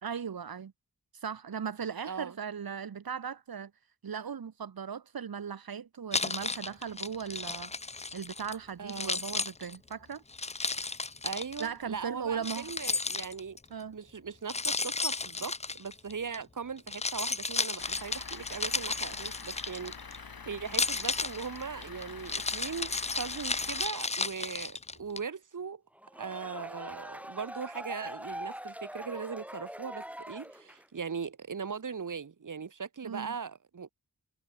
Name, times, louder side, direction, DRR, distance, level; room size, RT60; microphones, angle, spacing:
voice 1, 0.0-0.7 1.2-3.7 4.0-7.7 8.1-10.2 11.6-12.7 13.7-14.0 33.0-33.3, right 7 dB, 85° right, 1.3 m, -38 dB
voice 2, 2.0-2.4 8.8-9.2 11.2-13.6 13.9-25.8 26.1-33.9, right 6 dB, 60° right, 1.5 m, -39 dB
Keys jangling, 6.1-8.6 8.9-11.7 12.4-13.6 14.5-16.4 16.8-20.2 20.7-25.2, left 3 dB, 20° left, 0.5 m, -33 dB
Truck / Idling, 17.8-23.9, left 5 dB, 85° left, 3.6 m, -46 dB
sound 1, 26.0-31.0, equal, 5° right, 2.0 m, -42 dB
wide cardioid pair, 85°, 35 cm